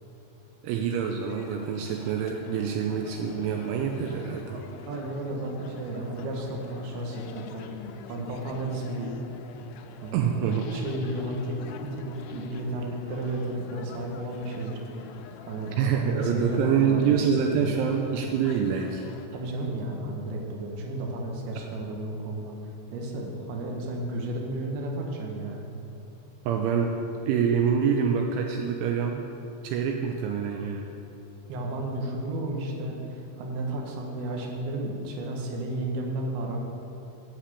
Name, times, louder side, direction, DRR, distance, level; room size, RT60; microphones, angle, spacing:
voice 1, 0.6-4.6 10.1-10.7 15.8-19.0 26.5-27.0 27.3-29.2 29.6-30.9, right 7 dB, 85° right, 2 dB, 3.0 m, -26 dB
sound 1, 1.2-19.3, left 7 dB, 80° left, 2.8 m, -46 dB
voice 2, 4.4-7.7 8.1-9.2 10.0-10.3 10.7-14.8 15.5-17.8 19.3-22.6 22.9-25.6 31.5-36.6, right 1 dB, 65° right, 0 dB, 2.9 m, -33 dB
11.5 x 5.9 x 8.4 m, 2.8 s
omnidirectional pair, 5.6 m